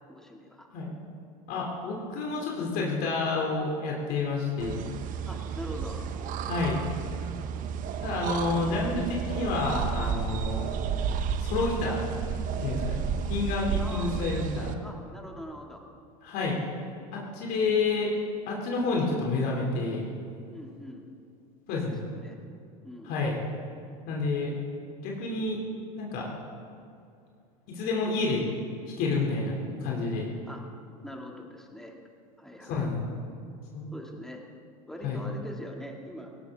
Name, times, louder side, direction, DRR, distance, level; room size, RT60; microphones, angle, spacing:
voice 1, 0.1-0.7 5.3-6.0 8.5-8.8 13.8-15.8 20.5-21.1 21.7-21.9 22.2-22.4 22.8-23.1 30.5-30.6 31.0-32.0 32.4-32.9 33.9-34.4 34.9-36.3, equal, ahead, 0 dB, 2.3 m, -43 dB
voice 2, 1.5-4.8 6.4-6.8 8.0-10.6 11.4-12.1 12.6-14.7 16.2-16.6 17.1-18.1 18.5-20.0 21.7-22.0 23.1-23.4 24.1-24.5 25.0-25.6 26.0-26.3 27.7-28.4 29.0-30.3 32.6-33.0 33.7-33.9 35.0-35.2, left 3 dB, 55° left, -2 dB, 2.9 m, -29 dB
sound 1, 4.6-14.7, right 7 dB, 45° right, 1.1 m, -32 dB
17.5 x 17.5 x 3.6 m, 2.5 s
hypercardioid pair, 95°, 18 cm